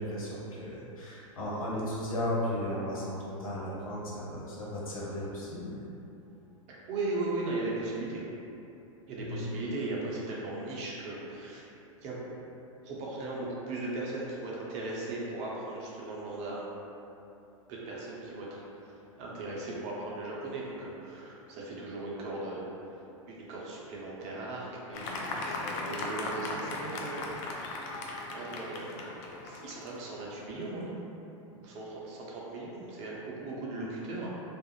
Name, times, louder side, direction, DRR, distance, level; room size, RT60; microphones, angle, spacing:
voice 1, 0.0-5.8 9.2-9.4, left 1 dB, 90° left, -7 dB, 0.7 m, -35 dB
voice 2, 6.7-8.2 9.1-11.6 12.0-12.2 12.8-16.7 17.7-18.6 19.2-22.6 23.3-27.8 28.3-29.1 29.4-30.9 31.5-34.3, right 2 dB, 40° right, -5 dB, 0.6 m, -37 dB
Fireworks, 24.9-30.7, left 2 dB, 40° left, 0.4 m, -38 dB
2.4 x 2.0 x 3.0 m, 2.8 s
hypercardioid pair, 110°, 17 cm